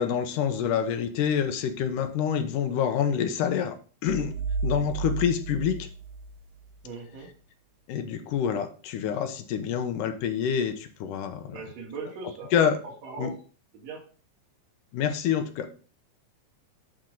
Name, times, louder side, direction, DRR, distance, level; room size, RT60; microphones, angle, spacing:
voice 1, 0.0-3.8 4.0-4.3 4.6-5.9 7.9-11.6 12.5-12.8 13.2-13.3 14.9-15.7, left 8 dB, 85° left, 8 dB, 2.5 m, -27 dB
sound 1, 4.1-6.9, right 3 dB, 80° right, 1.5 m, -32 dB
voice 2, 6.8-7.3 11.5-12.5 13.0-13.3 13.7-14.0, right 4 dB, 55° right, -1 dB, 3.0 m, -39 dB
10.5 x 4.5 x 3.9 m, 0.40 s
omnidirectional pair, 3.6 m